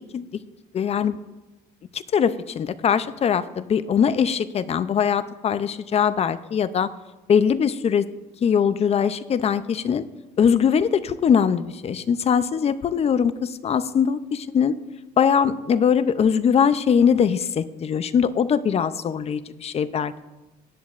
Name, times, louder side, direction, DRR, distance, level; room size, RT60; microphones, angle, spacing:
voice 1, 0.7-1.2 1.9-6.9 7.3-8.1 8.4-10.0 10.4-14.7 15.2-20.1, left 7 dB, 40° left, 14 dB, 0.5 m, -21 dB
17.5 x 10.5 x 2.5 m, 1.1 s
cardioid pair, 110°, 17 cm